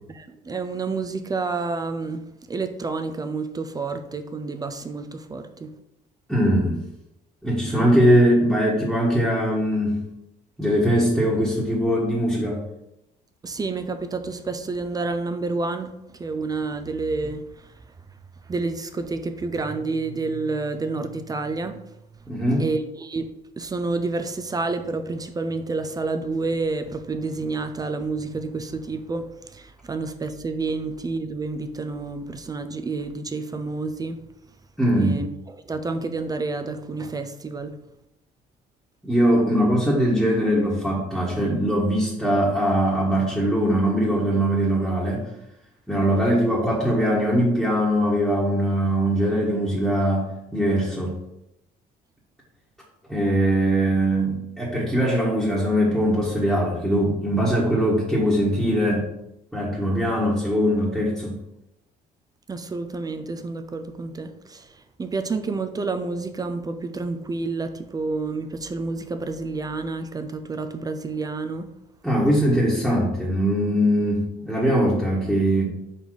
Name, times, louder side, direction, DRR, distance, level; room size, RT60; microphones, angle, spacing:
voice 1, 0.1-5.7 7.7-7.9 13.4-17.8 18.4-21.8 22.6-34.2 35.0-37.8 62.5-71.7, right 3 dB, 20° right, 0.5 m, -29 dB
voice 2, 6.3-6.8 7.4-10.0 10.6-12.6 22.3-22.6 34.8-35.2 39.0-45.3 45.9-51.2 53.1-59.1 59.5-61.3 72.0-75.6, equal, ahead, 1.5 m, -21 dB
5.2 x 4.2 x 4.8 m
cardioid pair, 110°, 17 cm